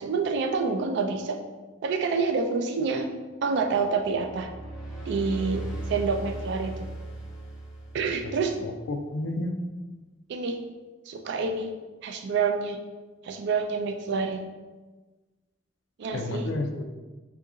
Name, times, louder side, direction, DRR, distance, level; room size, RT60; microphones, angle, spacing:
voice 1, 0.0-1.4 1.8-3.1 3.4-4.5 5.1-6.7 7.9-8.6 10.3-10.6 11.1-11.7 12.0-12.8 13.2-14.4 16.0-16.5, right 4 dB, 60° right, 5 dB, 0.3 m, -27 dB
sound 1, 4.0-8.7, right 2 dB, 5° right, 0.7 m, -37 dB
voice 2, 8.6-9.5 16.1-16.8, left 2 dB, 75° left, 5 dB, 0.4 m, -31 dB
2.7 x 2.5 x 3.6 m, 1.2 s
head